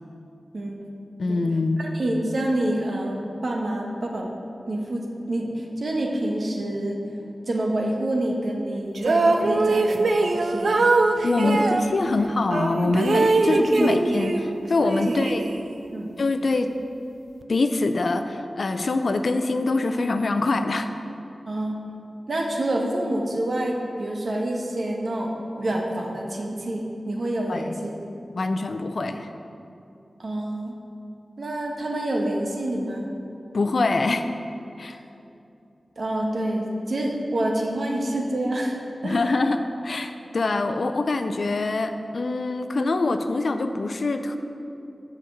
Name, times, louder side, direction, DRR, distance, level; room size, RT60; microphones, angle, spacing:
voice 1, 1.2-1.8 11.2-15.5 16.2-16.7 17.5-20.9 27.5-27.8 28.3-29.3 33.5-34.2 34.8-35.0 39.0-44.4, left 3 dB, 65° left, 8 dB, 0.4 m, -24 dB
voice 2, 1.8-4.3 4.7-7.0 7.5-10.8 11.4-11.6 12.0-12.1 13.5-14.2 15.9-16.1 21.4-21.8 22.3-25.3 25.6-28.1 30.2-30.7 31.4-33.1 36.0-38.7 39.0-39.3 44.3-44.4, right 1 dB, 65° right, 0 dB, 1.1 m, -27 dB
sound 1, 9.0-11.8 12.5-14.5 14.8-15.9, right 3 dB, 80° right, 0.5 m, -22 dB
7.8 x 5.2 x 5.8 m, 2.7 s
wide cardioid pair, 80°, 0 cm